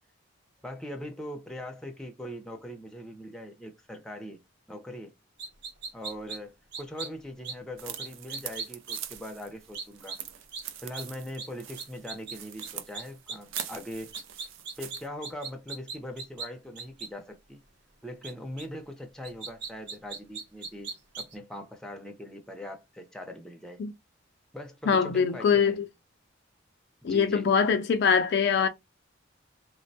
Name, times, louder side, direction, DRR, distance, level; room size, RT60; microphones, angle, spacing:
voice 1, 0.6-4.4 4.7-5.1 5.9-10.2 10.8-14.1 14.8-17.6 18.0-23.8 24.5-25.8 27.0-27.5, left 1 dB, 5° left, 0.5 m, -41 dB
sound 1, 5.4-6.4 6.7-7.1 7.4-7.5 8.0-9.0 9.7-10.2 10.5-10.6 10.9-11.0 11.4-11.5 11.8-12.3 12.6-12.7 12.9-13.6 14.1-16.5 16.7-17.1 18.2-18.3 18.6-18.7 19.2-21.3, right 5 dB, 55° right, 0.8 m, -37 dB
sound 2, 7.8-15.1, right 10 dB, 75° right, 0.4 m, -43 dB
voice 2, 24.9-25.9 27.0-28.7, left 6 dB, 55° left, 0.3 m, -23 dB
3.4 x 2.1 x 2.6 m
head